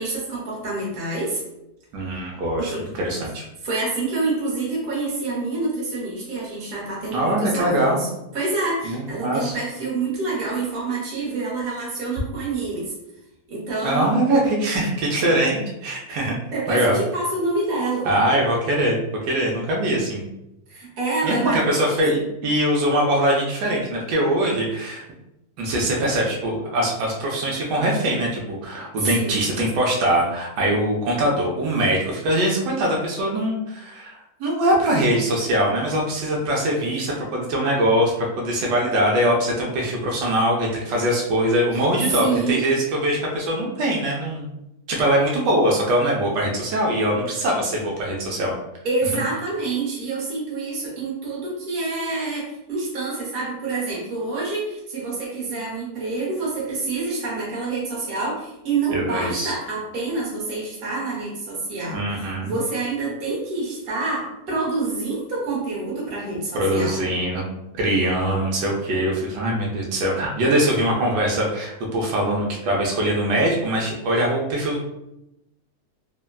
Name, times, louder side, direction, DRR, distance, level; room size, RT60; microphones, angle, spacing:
voice 1, 0.0-1.4 2.6-2.8 3.6-8.1 8.3-12.9 13.5-14.1 16.5-18.1 20.7-22.0 29.0-29.4 41.7-41.8 42.2-42.6 48.8-67.0, right 3 dB, 40° right, -5 dB, 1.0 m, -27 dB
voice 2, 1.9-3.4 7.1-8.0 8.8-9.5 13.8-16.3 16.7-17.0 18.0-20.3 21.2-25.0 25.6-44.5 44.9-48.6 58.9-59.6 61.9-62.6 66.5-67.4 67.7-74.9, right 1 dB, 80° right, -1 dB, 1.2 m, -22 dB
3.4 x 2.1 x 2.2 m, 0.87 s
omnidirectional pair, 1.8 m